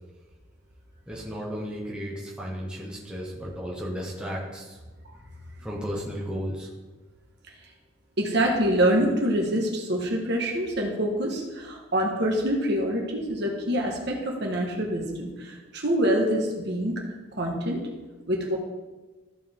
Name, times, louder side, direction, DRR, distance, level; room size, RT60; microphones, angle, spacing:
voice 1, 1.1-4.8 5.6-6.7, equal, 5° right, -4 dB, 1.3 m, -34 dB
voice 2, 8.2-17.0 17.3-17.8 18.3-18.6, equal, 55° right, 0 dB, 1.5 m, -26 dB
14.0 x 4.7 x 3.7 m, 1.2 s
head